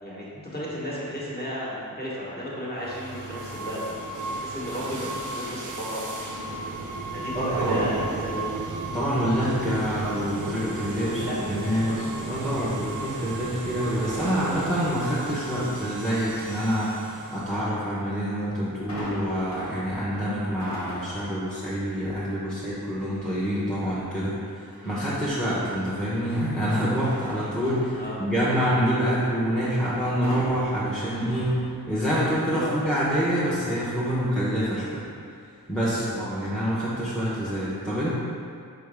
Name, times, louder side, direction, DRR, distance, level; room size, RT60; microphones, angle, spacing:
voice 1, 0.0-3.9 4.2-6.0 7.1-8.5 11.0-12.0 19.5-19.7 24.7-25.0 27.9-28.2 32.5-32.7 35.9-36.1, equal, 25° left, -8 dB, 1.3 m, -34 dB
sound 1, 2.8-17.6, right 2 dB, 55° right, 0.5 m, -34 dB
voice 2, 7.3-7.9 8.9-31.6 31.9-35.0 35.7-38.1, equal, ahead, -10 dB, 0.9 m, -26 dB
sound 2, 18.9-21.4 21.9-22.3 24.7-25.4 25.9-28.7 30.2-32.2 32.5-32.6, equal, 45° left, 1.1 m, -41 dB
4.3 x 3.5 x 3.4 m, 2.2 s
wide cardioid pair, 40°, 38 cm